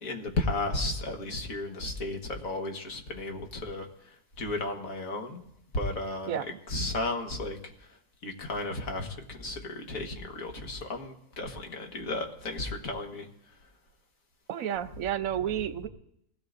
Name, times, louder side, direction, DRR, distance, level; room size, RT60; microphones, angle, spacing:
voice 1, 0.0-5.4 5.7-7.6 8.2-13.3, left 2 dB, 75° left, 3 dB, 1.9 m, -34 dB
voice 2, 14.5-15.9, right 10 dB, 75° right, 11 dB, 1.1 m, -31 dB
22.0 x 16.5 x 2.6 m, 0.77 s
omnidirectional pair, 1.4 m